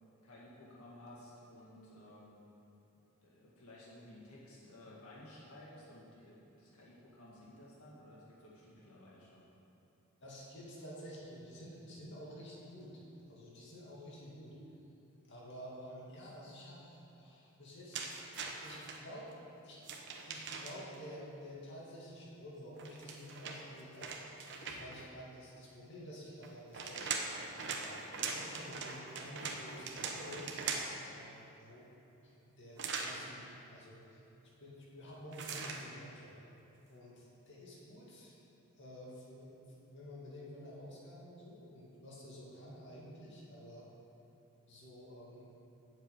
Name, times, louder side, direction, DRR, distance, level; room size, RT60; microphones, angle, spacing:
voice 1, 0.2-2.4 3.2-9.5, left 1 dB, 85° left, -6 dB, 2.0 m, -55 dB
voice 2, 10.2-13.0 13.3-14.6 15.2-18.1 18.4-19.3 19.6-19.8 20.2-24.1 24.6-27.1 27.7-30.5 31.1-36.3 36.9-38.4 38.8-43.9 44.7-45.5, equal, 55° left, -5 dB, 2.3 m, -50 dB
sound 1, 17.9-19.0 19.8-21.0 22.8-25.0 26.4-31.1 32.8-33.2 35.3-35.8, right 5 dB, 55° right, 1.0 m, -41 dB
7.7 x 7.3 x 8.5 m, 2.9 s
head